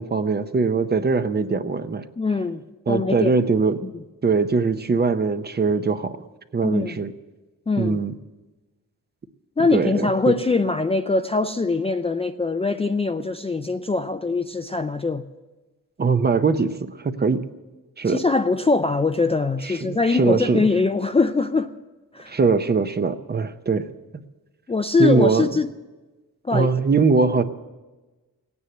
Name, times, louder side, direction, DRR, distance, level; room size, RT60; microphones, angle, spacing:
voice 1, 0.0-2.0 2.9-3.8 4.2-6.2 6.5-7.1 7.8-8.1 9.7-10.3 16.0-17.4 18.0-18.2 19.7-20.7 22.3-23.9 25.0-25.5 26.5-27.4, right 4 dB, 30° right, 0.7 m, -21 dB
voice 2, 2.2-3.3 3.8-3.9 6.6-7.0 7.7-8.0 9.6-15.2 18.1-21.7 22.1-22.4 24.7-25.7 26.4-26.7, left 3 dB, 15° left, 0.4 m, -22 dB
17.0 x 9.6 x 7.8 m
wide cardioid pair, 135°, 35 cm